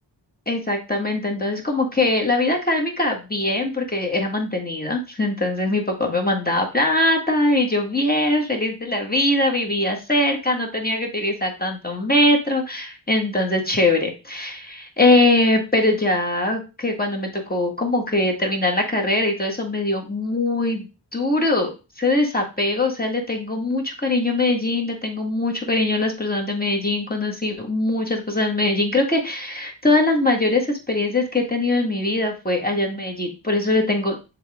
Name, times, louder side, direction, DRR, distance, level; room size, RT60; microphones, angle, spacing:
voice 1, 0.5-20.9 21.1-21.7 22.0-34.4, left 2 dB, 20° left, 1 dB, 1.7 m, -22 dB
6.9 x 4.0 x 3.6 m, 0.29 s
wide cardioid pair, 50°, 44 cm